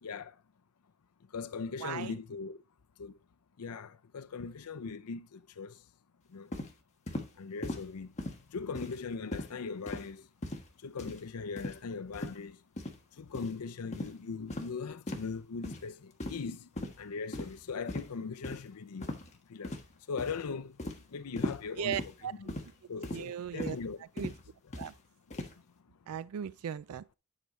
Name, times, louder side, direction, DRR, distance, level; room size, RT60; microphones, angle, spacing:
voice 1, 0.0-0.4 1.3-2.6 3.0-3.2 3.6-5.8 6.3-6.5 7.4-8.1 8.5-10.3 10.8-12.6 13.1-16.7 17.0-19.1 19.5-19.8 20.1-22.0 22.4-22.5 22.9-24.1, left 5 dB, 85° left, 0.5 m, -40 dB
voice 2, 1.8-2.1 21.8-22.5 23.1-23.8 24.2-24.3 24.8-24.9 26.1-27.0, right 9 dB, 80° right, 0.4 m, -37 dB
sound 1, 6.5-6.7 7.1-7.3 7.6-7.9 8.2-8.4 8.8-9.0 9.3-9.5 9.9-10.1 10.4-10.7 11.0-11.2 11.6-11.8 12.1-12.4 12.8-13.0 13.3-13.5 13.9-14.1 14.5-14.7 15.1-15.3 15.6-15.8 16.2-16.5 16.8-17.0 17.3-17.6 17.9-18.1 18.4-18.6 19.0-19.3 19.6-19.9 20.2-20.4 20.8-21.0 21.4-21.6 21.9-22.1 22.5-22.7 23.0-23.3 23.6-23.8 24.2-24.4 24.7-24.9 25.3-25.5, left 1 dB, 30° left, 1.4 m, -38 dB
10.0 x 4.9 x 4.1 m
head